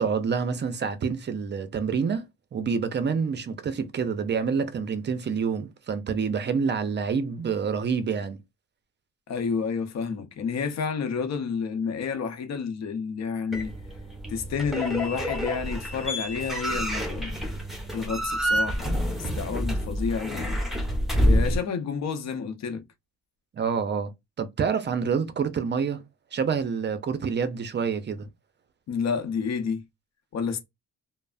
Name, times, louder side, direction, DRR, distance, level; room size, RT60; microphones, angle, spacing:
voice 1, 0.0-2.2 2.5-8.4 23.5-24.1 24.4-26.0 26.3-28.3, right 6 dB, 35° right, 0.5 m, -27 dB
voice 2, 9.3-13.7 14.3-17.5 17.9-20.6 21.2-22.8 28.9-29.8 30.3-30.6, left 6 dB, 60° left, 0.7 m, -30 dB
sound 1, 13.5-21.6, equal, ahead, 1.0 m, -28 dB
3.1 x 2.0 x 2.4 m
cardioid pair, 90°, 30 cm